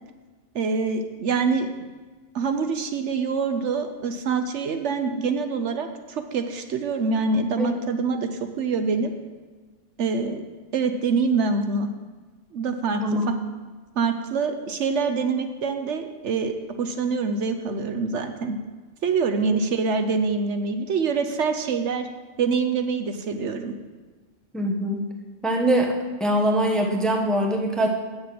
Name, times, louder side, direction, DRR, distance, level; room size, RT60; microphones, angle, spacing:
voice 1, 0.5-1.7 2.3-9.1 10.0-10.4 10.7-11.9 12.5-13.0 14.0-18.6 19.0-22.1 22.4-23.7, right 4 dB, 70° right, 7 dB, 1.0 m, -25 dB
voice 2, 24.5-25.0 25.4-25.9 26.2-27.9, equal, ahead, 1 dB, 1.0 m, -23 dB
8.8 x 6.7 x 7.5 m, 1.3 s
omnidirectional pair, 1.3 m